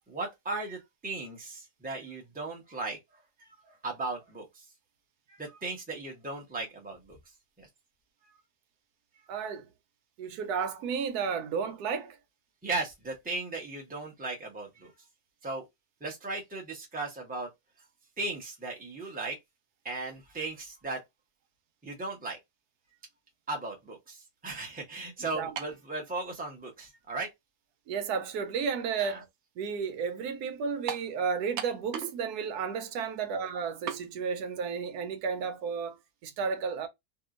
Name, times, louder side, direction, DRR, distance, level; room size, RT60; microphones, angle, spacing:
voice 1, 0.1-3.0 3.4-4.6 5.3-7.2 7.6-7.7 12.6-14.9 15.4-15.6 16.0-17.5 18.2-19.4 19.8-21.0 21.8-22.4 23.5-27.3 29.0-29.2, right 3 dB, 10° right, 0.7 m, -37 dB
voice 2, 9.3-9.7 10.2-12.2 25.3-25.5 27.9-29.2 29.6-36.9, right 6 dB, 90° right, 1.2 m, -32 dB
sound 1, 25.6-25.8 26.7-26.8 30.9-31.1 31.6-32.2 32.5-32.6 33.9-34.1, right 8 dB, 70° right, 0.7 m, -36 dB
2.8 x 2.4 x 2.4 m
omnidirectional pair, 1.6 m